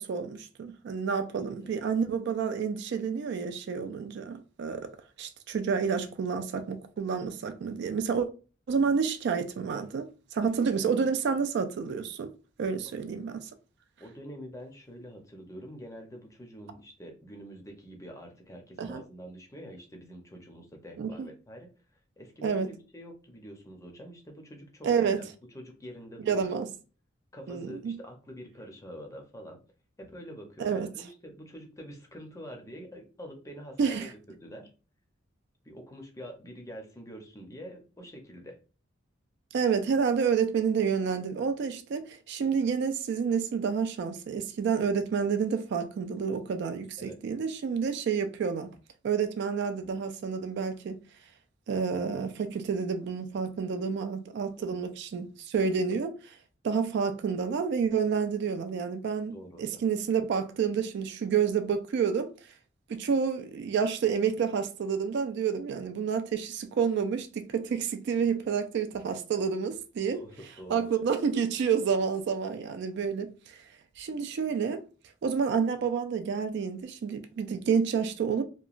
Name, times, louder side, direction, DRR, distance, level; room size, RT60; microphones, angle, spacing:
voice 1, 0.0-4.9 5.2-8.3 8.7-12.3 12.6-13.5 18.8-19.0 21.0-21.3 22.4-22.7 24.8-25.2 26.3-26.7 27.5-28.0 30.6-30.9 33.8-34.1 39.5-48.7 49.0-51.0 51.7-56.3 56.6-62.3 62.9-70.2 70.7-73.6 74.0-74.8 75.2-78.4, right 6 dB, 60° right, 0.3 m, -29 dB
voice 2, 1.4-1.7 12.8-13.0 14.0-21.7 22.2-26.6 27.3-29.6 30.0-34.7 35.6-38.6 47.0-47.2 54.6-54.8 59.3-59.8 70.0-70.9, equal, 15° left, 0.5 m, -46 dB
2.9 x 2.2 x 2.4 m
head